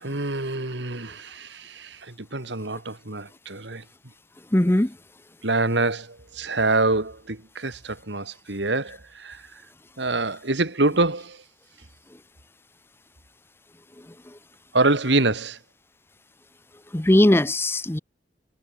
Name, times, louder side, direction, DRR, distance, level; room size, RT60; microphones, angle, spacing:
voice 1, 0.0-3.8 5.4-9.4 10.0-11.4 14.7-15.6, right 2 dB, 75° right, 2.3 m, -25 dB
voice 2, 4.5-4.9 16.9-18.0, left 1 dB, 15° left, 0.6 m, -19 dB
head